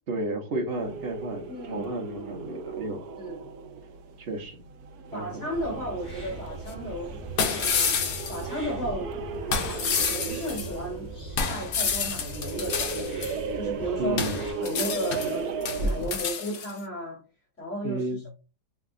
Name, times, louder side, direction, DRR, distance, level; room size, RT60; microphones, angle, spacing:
voice 1, 0.1-3.1 4.2-4.6 5.1-5.8 14.0-14.4 17.8-18.2, right 2 dB, 45° right, 0.9 m, -32 dB
sound 1, 0.7-16.4, right 4 dB, 70° right, 1.1 m, -36 dB
voice 2, 1.5-1.9 3.2-3.5 5.1-7.3 8.3-9.1 9.4-11.1 11.5-13.2 13.5-14.2 14.6-17.2 17.6-18.1, equal, 40° left, 2.5 m, -34 dB
sound 2, 5.5-14.5, right 1 dB, 20° left, 1.3 m, -41 dB
sound 3, 6.7-6.8 7.4-8.4 9.5-10.7 11.4-13.3 14.2-15.4 15.6-16.7, left 6 dB, 75° left, 1.5 m, -29 dB
5.8 x 2.7 x 2.4 m
omnidirectional pair, 1.8 m